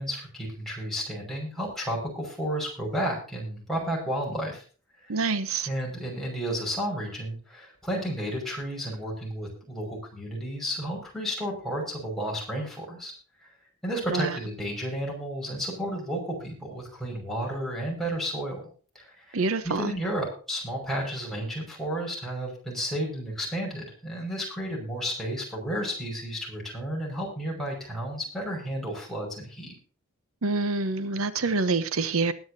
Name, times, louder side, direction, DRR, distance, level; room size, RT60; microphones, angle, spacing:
voice 1, 0.0-4.6 5.0-5.2 5.7-13.1 13.4-13.5 13.8-18.6 18.9-29.7, equal, ahead, -3 dB, 5.6 m, -32 dB
voice 2, 5.1-5.7 14.1-14.4 19.3-19.9 30.4-32.3, right 3 dB, 75° right, 12 dB, 0.9 m, -26 dB
20.5 x 9.6 x 2.8 m, 0.39 s
head